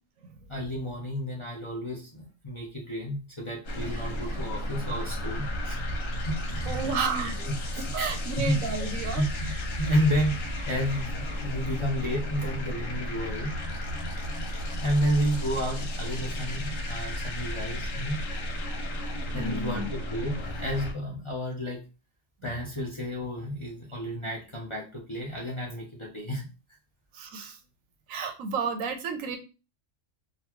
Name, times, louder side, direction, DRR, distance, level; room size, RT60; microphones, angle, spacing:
voice 1, 0.5-5.8 6.2-8.7 9.2-13.5 14.8-18.2 19.3-21.8 22.4-26.5, equal, 30° left, -2 dB, 0.6 m, -31 dB
sound 1, 3.6-20.9, equal, 80° left, 1.2 m, -33 dB
voice 2, 6.7-7.3 7.8-9.2 19.3-19.9 27.1-27.6 28.1-29.4, right 5 dB, 90° right, 6 dB, 1.1 m, -31 dB
4.0 x 2.3 x 2.9 m, 0.32 s
omnidirectional pair, 1.3 m